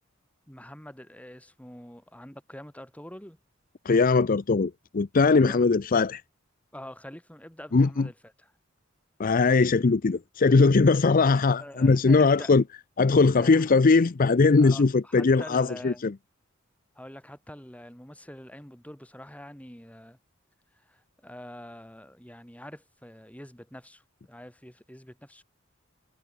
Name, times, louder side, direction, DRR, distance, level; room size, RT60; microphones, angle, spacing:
voice 1, 0.5-3.4 5.2-5.7 6.7-8.5 11.6-12.5 13.3-13.7 14.6-16.1 17.0-20.2 20.7-25.4, left 1 dB, 5° left, 5.6 m, -45 dB
voice 2, 3.9-6.2 7.7-8.1 9.2-12.6 13.0-16.1, left 4 dB, 45° left, 0.5 m, -20 dB
head